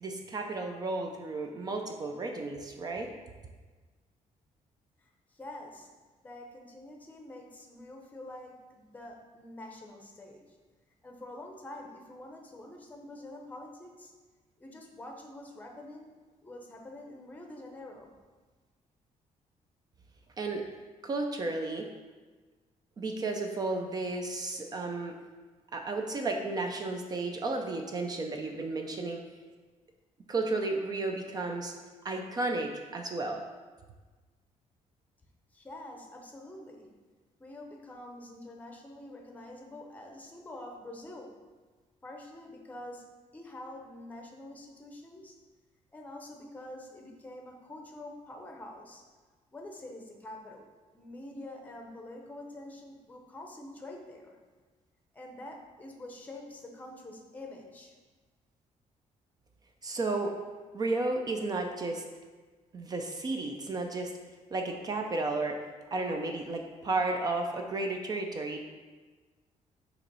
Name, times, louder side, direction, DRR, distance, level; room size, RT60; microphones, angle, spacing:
voice 1, 0.0-3.2 20.4-20.7 21.0-21.9 23.0-25.2 25.7-29.2 30.3-31.7 32.0-33.5 59.8-60.3 60.7-62.0 62.7-64.1 64.5-65.6 65.9-68.6, right 2 dB, 30° right, 4 dB, 0.4 m, -33 dB
voice 2, 5.0-5.9 6.2-10.6 11.0-14.1 14.6-16.1 16.4-18.1 35.5-36.9 37.4-41.3 42.0-43.1 43.3-45.4 45.9-49.0 49.5-54.4 55.1-57.9, left 1 dB, 10° left, 1 dB, 0.7 m, -46 dB
6.8 x 3.0 x 5.3 m, 1.4 s
cardioid pair, 170°, 13 cm